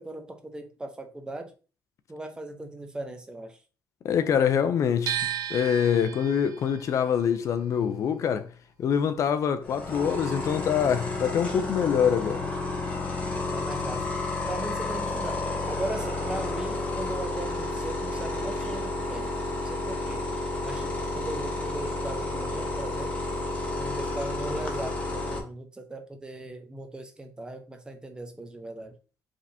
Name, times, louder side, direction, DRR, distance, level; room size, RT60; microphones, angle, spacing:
voice 1, 0.0-1.5 2.1-3.6 13.4-14.0 14.5-15.4 15.7-19.3 19.6-23.1 23.8-29.0, right 2 dB, 10° right, 0.7 m, -38 dB
voice 2, 4.0-5.2 5.5-8.5 8.8-12.5, left 8 dB, 50° left, 0.4 m, -25 dB
sound 1, 5.1-11.1 11.4-12.7, right 10 dB, 75° right, 0.6 m, -37 dB
sound 2, 9.6-25.4, left 2 dB, 20° left, 1.1 m, -31 dB
5.0 x 3.3 x 2.7 m
cardioid pair, 150°, 7 cm